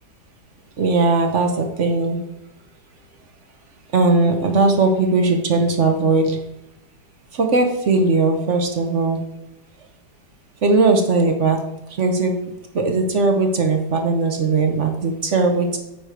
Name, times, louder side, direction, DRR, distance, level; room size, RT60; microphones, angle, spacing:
voice 1, 0.8-2.2 3.9-6.4 7.3-9.2 10.6-11.6 11.9-12.4 12.7-15.8, right 3 dB, 50° right, 4 dB, 1.1 m, -18 dB
9.0 x 5.0 x 5.0 m, 0.90 s
omnidirectional pair, 1.9 m